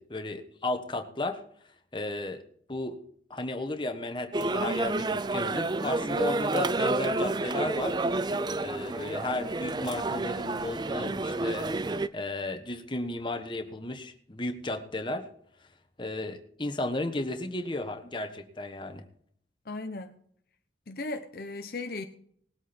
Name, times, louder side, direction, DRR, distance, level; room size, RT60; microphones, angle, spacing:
voice 1, 0.0-1.4 1.9-2.4 2.7-3.0 3.3-7.9 8.6-11.8 12.1-15.2 16.0-19.0, left 2 dB, 25° left, 6 dB, 1.3 m, -34 dB
sound 1, 4.3-12.1, right 2 dB, 25° right, 0.4 m, -29 dB
voice 2, 19.6-20.2 20.9-22.1, left 2 dB, 55° left, 6 dB, 0.8 m, -36 dB
19.0 x 8.4 x 4.4 m, 0.64 s
head